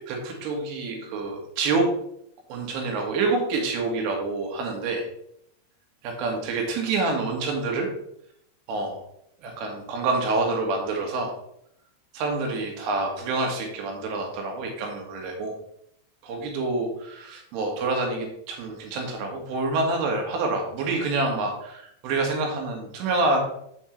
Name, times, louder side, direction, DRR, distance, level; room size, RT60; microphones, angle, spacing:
voice 1, 0.1-1.9 2.5-5.1 6.0-7.9 8.7-9.0 9.4-11.3 12.1-15.5 16.2-23.4, right 3 dB, 45° right, 2 dB, 2.1 m, -27 dB
7.8 x 7.7 x 3.4 m, 0.74 s
figure-of-eight pair, 90°, 0 cm